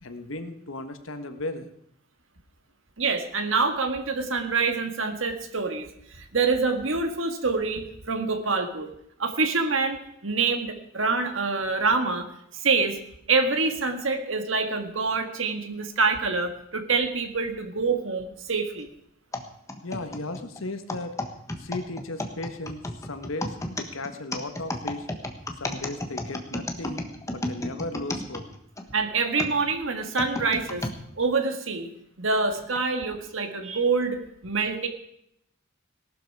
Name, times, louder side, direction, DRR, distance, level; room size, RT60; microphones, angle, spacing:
voice 1, 0.0-1.7 19.8-21.2 21.6-25.1 25.6-28.5, left 2 dB, 80° left, 8 dB, 1.5 m, -36 dB
voice 2, 3.0-8.9 9.2-12.3 12.5-13.0 13.3-18.9 28.9-30.9 31.2-31.9 32.2-34.9, right 4 dB, 70° right, 6 dB, 1.8 m, -26 dB
sound 1, 19.3-28.9 29.4-31.0 31.6-31.7 32.6-32.8, left 1 dB, 15° left, 1.3 m, -33 dB
18.0 x 12.0 x 4.8 m, 0.75 s
head